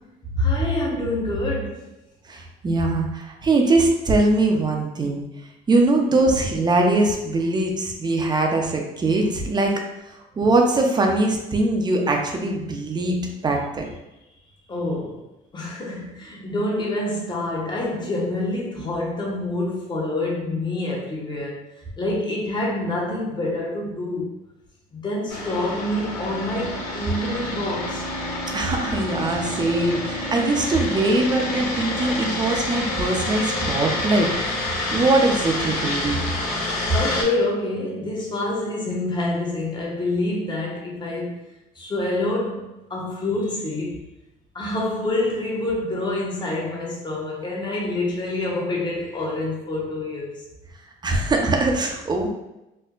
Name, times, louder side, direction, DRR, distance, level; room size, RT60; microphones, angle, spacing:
voice 1, 0.3-1.8 14.7-15.2 15.5-21.6 22.0-24.3 24.9-28.1 36.9-41.4 41.8-44.0 44.5-50.4, left 2 dB, 25° left, 0.9 m, -26 dB
voice 2, 2.3-5.2 5.7-9.7 10.1-13.2 13.4-13.9 28.5-34.3 34.6-36.2 51.0-52.3, right 2 dB, 25° right, 0.6 m, -21 dB
sound 1, 25.3-37.2, left 2 dB, 75° left, 1.4 m, -28 dB
4.3 x 2.1 x 2.4 m
cardioid pair, 105°, 18 cm